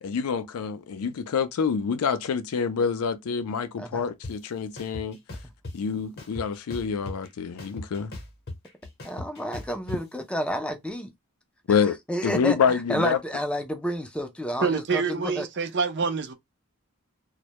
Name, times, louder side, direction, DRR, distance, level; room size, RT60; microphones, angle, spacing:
voice 1, 0.0-5.2 5.7-8.1 11.7-12.0 12.2-13.2, left 6 dB, 80° left, 0.4 m, -27 dB
sound 1, 4.2-4.3 4.8-5.7 6.2-7.3 7.6-10.0, left 2 dB, 45° left, 0.8 m, -38 dB
voice 2, 9.0-11.1 12.1-15.4, equal, 5° left, 0.4 m, -30 dB
voice 3, 14.6-16.3, right 5 dB, 50° right, 0.5 m, -26 dB
2.1 x 2.1 x 2.8 m
head